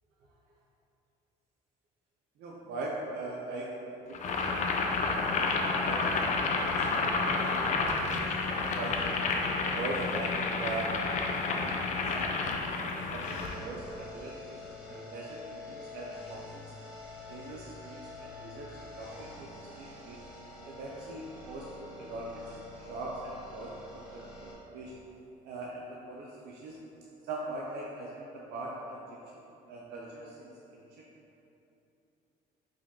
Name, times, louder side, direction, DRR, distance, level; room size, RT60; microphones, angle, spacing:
voice 1, 2.4-3.9 4.3-5.0 5.7-6.2 6.7-8.9 9.5-10.3 10.6-10.9 11.5-11.8 12.1-14.5 14.9-16.7 17.3-18.7 19.0-20.2 20.6-23.8 24.1-24.9 25.4-26.8 27.2-29.0 29.3-31.1, right 2 dB, 75° right, -4 dB, 0.5 m, -41 dB
Boiling, 4.1-13.6, left 3 dB, 45° left, 0.4 m, -30 dB
sound 1, 13.2-24.5, left 2 dB, 5° right, 1.1 m, -47 dB
5.0 x 2.3 x 3.6 m, 2.8 s
cardioid pair, 110°, 17 cm